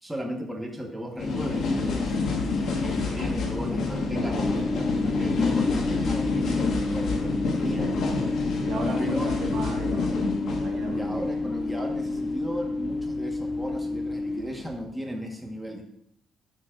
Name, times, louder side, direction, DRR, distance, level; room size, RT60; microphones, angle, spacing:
voice 1, 0.0-2.2 2.7-8.0 9.0-9.3 10.9-15.8, equal, 5° right, 0 dB, 1.2 m, -35 dB
sound 1, 1.2-14.7, left 3 dB, 70° left, 1.3 m, -28 dB
sound 2, 4.4-14.4, left 2 dB, 30° right, 1.7 m, -31 dB
voice 2, 8.6-10.3 10.6-11.2, right 3 dB, 70° right, 0 dB, 1.5 m, -35 dB
11.0 x 4.6 x 2.5 m, 0.76 s
cardioid pair, 90°, 0 cm